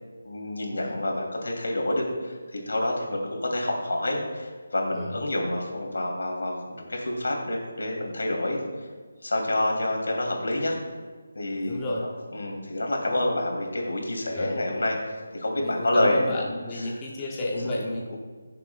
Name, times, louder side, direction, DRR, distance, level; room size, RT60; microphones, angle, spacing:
voice 1, 0.2-8.6 9.2-10.8 11.3-11.8 12.3-16.3 17.5-17.8, left 1 dB, 80° left, 0 dB, 2.6 m, -28 dB
voice 2, 11.6-12.1 14.3-14.6 15.6-18.2, left 1 dB, 10° left, -4 dB, 0.6 m, -32 dB
16.5 x 6.7 x 2.3 m, 1.5 s
figure-of-eight pair, 180°, 0 cm